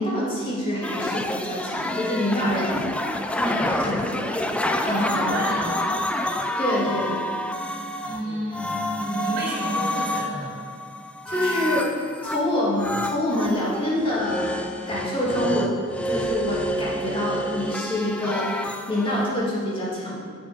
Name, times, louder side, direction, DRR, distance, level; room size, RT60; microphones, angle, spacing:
voice 1, 0.0-2.8 3.4-4.5 4.8-5.3 6.6-7.2 8.2-8.3 11.3-12.0 12.2-14.5 14.9-15.8 16.0-20.2, left 1 dB, 25° left, -6 dB, 2.4 m, -26 dB
sound 1, 0.8-8.2 8.5-12.4 12.8-19.3, left 1 dB, 5° left, 0.4 m, -28 dB
voice 2, 4.9-5.9 8.1-10.5, equal, 50° right, -5 dB, 2.7 m, -30 dB
8.8 x 7.3 x 5.7 m, 2.1 s
head